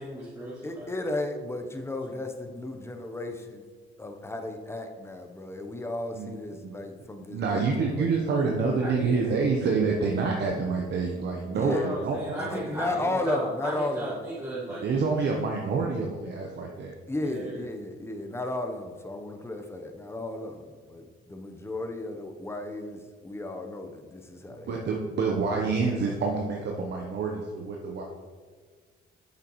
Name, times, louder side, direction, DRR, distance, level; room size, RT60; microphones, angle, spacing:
voice 1, 0.0-0.9 8.8-9.3 11.6-15.3 17.2-17.7, right 1 dB, 15° right, -8 dB, 2.2 m, -36 dB
voice 2, 0.6-3.6 4.0-8.8 11.5-11.9 12.4-14.2 17.1-24.8, left 2 dB, 10° left, 5 dB, 0.8 m, -34 dB
voice 3, 6.1-6.7 7.3-12.9 14.8-16.9 24.5-28.0, right 4 dB, 60° right, 0 dB, 0.9 m, -28 dB
8.4 x 6.7 x 3.1 m, 1.5 s
cardioid pair, 90°, 20 cm